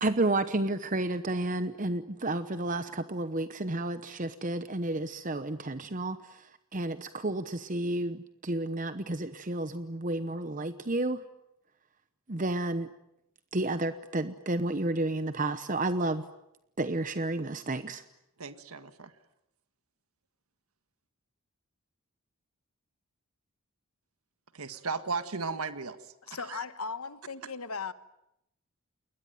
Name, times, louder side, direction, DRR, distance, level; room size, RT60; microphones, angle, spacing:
voice 1, 0.0-11.2 12.3-12.9 13.5-16.2 16.8-18.0, right 2 dB, 35° right, 11 dB, 1.0 m, -31 dB
voice 2, 18.4-19.1 24.5-26.6, right 4 dB, 80° right, 10 dB, 1.7 m, -36 dB
voice 3, 26.3-27.9, left 4 dB, 80° left, 13 dB, 1.4 m, -37 dB
29.0 x 21.0 x 9.3 m, 0.83 s
head